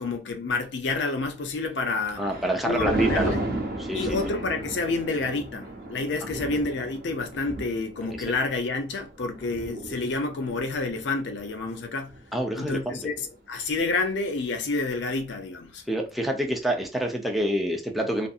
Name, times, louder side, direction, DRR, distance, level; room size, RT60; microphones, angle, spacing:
voice 1, 0.0-2.2 2.6-3.5 3.9-12.1 12.6-15.8, left 3 dB, 80° left, 0.5 m, -29 dB
Thunder, 1.7-13.2 13.6-14.0, right 2 dB, 55° right, 0.6 m, -34 dB
voice 2, 2.2-3.4 3.8-4.1 12.3-13.0 15.9-18.3, right 1 dB, ahead, 0.4 m, -27 dB
2.6 x 2.5 x 2.4 m
head